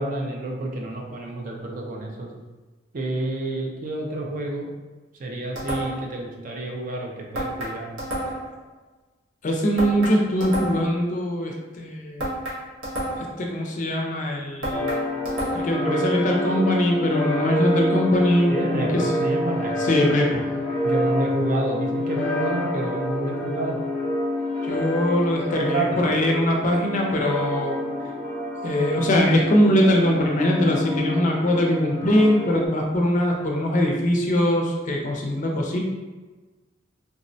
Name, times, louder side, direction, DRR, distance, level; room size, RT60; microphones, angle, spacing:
voice 1, 0.0-2.3 2.9-4.7 5.2-7.9 18.5-19.7 20.8-23.8 25.5-26.0, right 2 dB, 40° right, -1 dB, 0.4 m, -29 dB
sound 1, 5.6-6.2 7.3-8.6 9.8-11.0 12.2-13.4 14.6-15.8, right 1 dB, 90° right, 0.9 m, -30 dB
voice 2, 9.4-12.3 13.4-15.0 15.5-19.1 19.8-20.4 24.7-27.8 28.6-35.8, equal, 40° left, 0 dB, 0.4 m, -22 dB
sound 2, 14.7-32.7, left 1 dB, 10° left, 0.7 m, -28 dB
3.5 x 2.0 x 2.6 m, 1.3 s
head